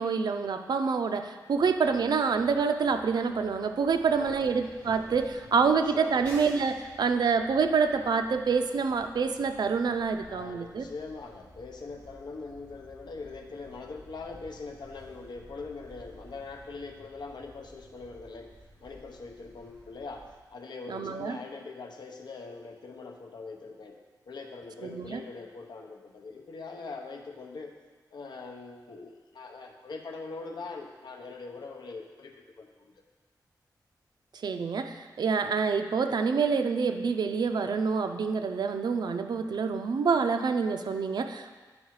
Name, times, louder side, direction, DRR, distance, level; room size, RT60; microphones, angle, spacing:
voice 1, 0.0-10.8 20.9-21.4 24.8-25.2 34.4-41.5, right 5 dB, 70° right, 6 dB, 0.5 m, -27 dB
sound 1, 1.5-20.4, equal, 20° left, 2.4 m, -53 dB
voice 2, 4.0-4.4 5.6-6.3 10.3-18.5 18.8-24.0 24.3-27.8 28.1-32.9, left 4 dB, 80° left, 3 dB, 0.8 m, -42 dB
9.5 x 4.7 x 4.7 m, 1.4 s
wide cardioid pair, 145°, 7 cm